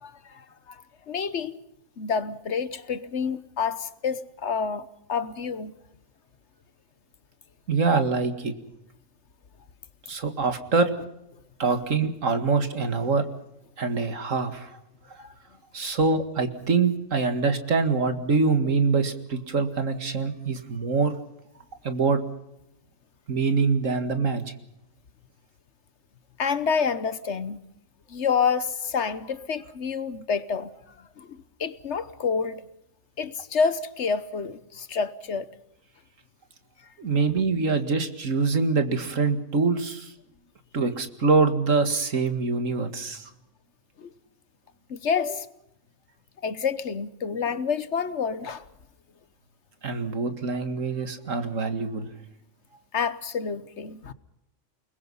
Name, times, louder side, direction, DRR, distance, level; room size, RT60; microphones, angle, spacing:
voice 1, 0.0-1.6 2.0-5.7 15.2-15.3 26.4-27.6 28.1-30.7 31.2-32.6 33.2-35.5 44.0-44.1 44.9-45.5 46.4-48.6 52.9-54.1, left 6 dB, 60° left, 1.3 m, -28 dB
voice 2, 7.7-8.5 10.1-10.9 11.6-13.3 13.8-14.8 15.7-21.1 21.8-22.2 23.3-24.5 37.0-40.1 40.7-43.3 49.8-52.1, right 4 dB, 70° right, 2.3 m, -24 dB
29.0 x 20.5 x 5.6 m
omnidirectional pair, 1.4 m